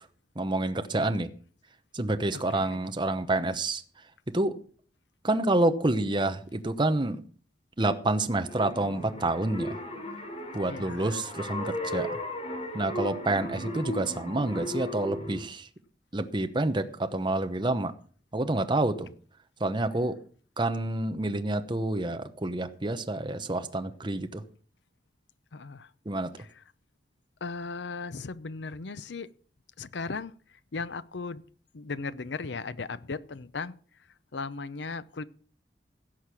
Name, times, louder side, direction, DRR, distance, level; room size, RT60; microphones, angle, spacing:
voice 1, 0.4-1.3 1.9-3.8 4.3-4.5 5.2-7.2 7.8-9.7 10.5-12.1 12.7-15.7 16.1-17.9 18.3-19.1 19.6-20.1 20.6-24.4 26.1-26.3, right 2 dB, 25° right, 0.9 m, -28 dB
voice 2, 2.3-2.8 10.7-11.2 13.4-13.7 25.5-25.9 26.4-26.6 27.4-29.3 29.8-30.3 30.7-31.4 31.7-33.7 34.3-35.2, left 4 dB, 70° left, 0.7 m, -37 dB
sound 1, 8.3-15.4, equal, 35° left, 3.3 m, -36 dB
16.5 x 6.6 x 6.0 m
head